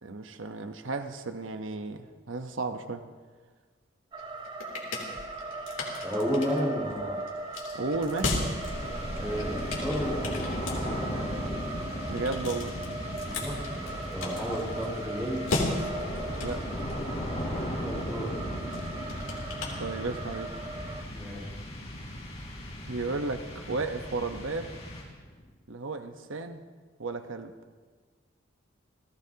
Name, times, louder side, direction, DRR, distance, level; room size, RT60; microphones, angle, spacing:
voice 1, 0.0-3.0 7.7-8.4 12.1-12.8 16.4-16.7 19.8-20.5 22.9-24.7 25.7-26.6 27.0-27.5, right 3 dB, 80° right, 8 dB, 1.0 m, -34 dB
sound 1, 4.1-21.0, right 2 dB, 25° right, 1.0 m, -39 dB
sound 2, 4.2-20.4, left 2 dB, 85° left, 3.1 m, -37 dB
voice 2, 6.0-7.2 9.2-10.4 13.2-15.5 17.4-18.4 21.1-21.5, equal, 10° right, -4 dB, 5.4 m, -32 dB
sound 3, 8.5-25.4, equal, 35° left, 3.9 m, -37 dB
30.0 x 16.0 x 2.9 m, 1.5 s
head